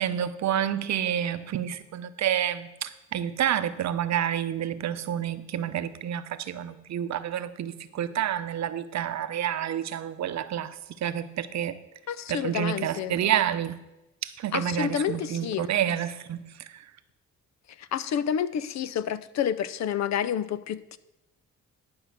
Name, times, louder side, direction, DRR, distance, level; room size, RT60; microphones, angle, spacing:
voice 1, 0.0-11.8 12.3-13.8 14.2-16.8, right 10 dB, 65° right, 12 dB, 0.8 m, -29 dB
voice 2, 12.1-13.2 14.5-15.7 17.8-21.0, left 9 dB, 65° left, 15 dB, 0.6 m, -29 dB
11.5 x 5.4 x 6.7 m, 0.96 s
cardioid pair, 90°, 30 cm